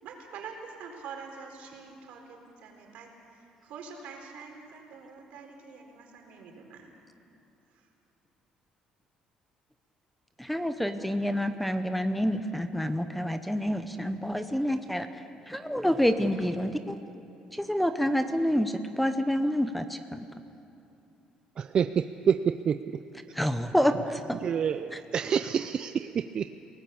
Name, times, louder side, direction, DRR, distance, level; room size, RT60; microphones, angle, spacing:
voice 1, 0.0-6.9, right 5 dB, 70° right, 2 dB, 4.2 m, -45 dB
voice 2, 10.4-15.1 15.5-17.0 17.5-20.2 23.3-24.4, equal, ahead, 9 dB, 0.8 m, -28 dB
voice 3, 21.6-22.8 24.4-26.6, right 7 dB, 35° right, 10 dB, 0.4 m, -28 dB
29.0 x 18.5 x 7.0 m, 2.9 s
cardioid pair, 155°, 2 cm